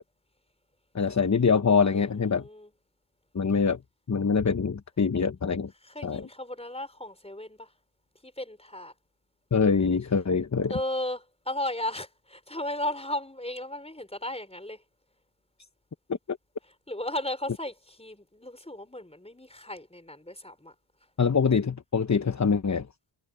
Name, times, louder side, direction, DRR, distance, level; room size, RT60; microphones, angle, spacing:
voice 1, 0.9-2.5 3.3-3.8 4.1-5.7 6.0-6.3 9.5-10.7 16.1-16.4 21.2-22.9, left 5 dB, 35° left, 1.0 m, -24 dB
voice 2, 1.9-2.7 5.8-7.7 8.2-8.9 10.7-14.8 16.9-20.7, left 1 dB, 10° left, 5.0 m, -35 dB
wide cardioid pair, 65°, 49 cm